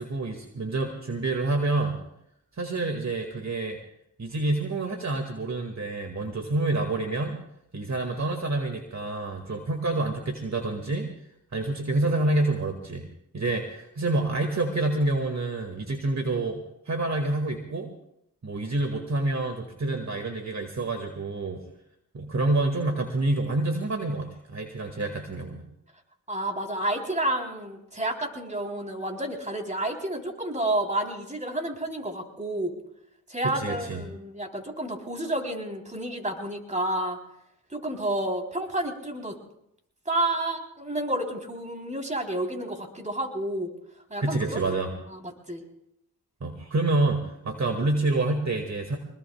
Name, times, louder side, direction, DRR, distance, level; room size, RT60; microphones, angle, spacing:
voice 1, 0.0-2.0 2.6-3.8 4.2-7.4 7.7-11.1 11.5-13.1 13.3-17.9 18.4-21.6 22.1-25.6 33.4-34.0 44.2-44.9 46.4-49.0, right 2 dB, 45° right, 3 dB, 2.1 m, -27 dB
voice 2, 26.3-32.7 33.3-37.2 37.7-39.4 40.1-43.7 44.1-44.6 45.1-45.6, right 1 dB, 20° right, 2 dB, 3.7 m, -30 dB
24.5 x 21.0 x 2.4 m, 0.77 s
cardioid pair, 55°, 38 cm